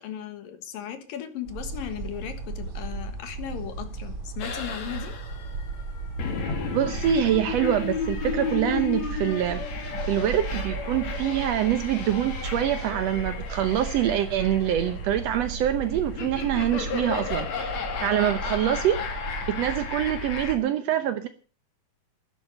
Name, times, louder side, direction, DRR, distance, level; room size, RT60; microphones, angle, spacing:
voice 1, 0.0-5.2, left 10 dB, 75° left, 9 dB, 3.3 m, -37 dB
sound 1, 1.4-20.6, right 3 dB, 35° right, 3.9 m, -36 dB
sound 2, 4.4-20.5, left 6 dB, 55° left, 3.0 m, -34 dB
voice 2, 6.7-9.6 10.0-19.0 19.5-21.3, right 11 dB, 80° right, 9 dB, 1.4 m, -25 dB
13.0 x 11.5 x 6.7 m, 0.39 s
omnidirectional pair, 4.1 m